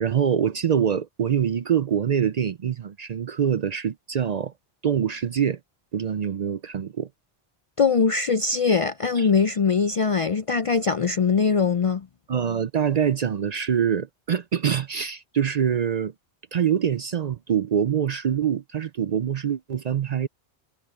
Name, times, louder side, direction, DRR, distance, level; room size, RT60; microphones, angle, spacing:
voice 1, 0.0-4.5 4.8-5.6 5.9-7.1 9.2-9.3 12.3-16.1 16.5-20.3, right 8 dB, 50° right, 0.5 m, -24 dB
voice 2, 7.8-12.1, left 5 dB, 50° left, 0.4 m, -21 dB
omnidirectional pair, 1.0 m